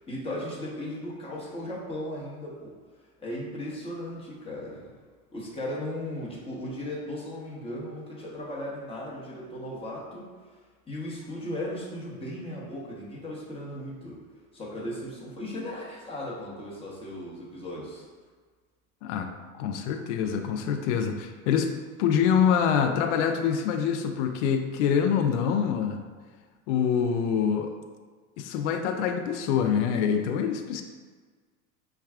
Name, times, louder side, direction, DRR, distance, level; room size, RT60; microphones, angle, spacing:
voice 1, 0.0-2.7 3.2-4.9 5.3-10.3 10.9-14.2 14.5-18.1, left 1 dB, 15° left, -5 dB, 1.0 m, -36 dB
voice 2, 19.6-21.7 22.0-26.0 26.7-27.7 28.4-30.8, left 7 dB, 55° left, 5 dB, 0.5 m, -25 dB
5.5 x 2.3 x 2.3 m, 1.5 s
hypercardioid pair, 100°, 43 cm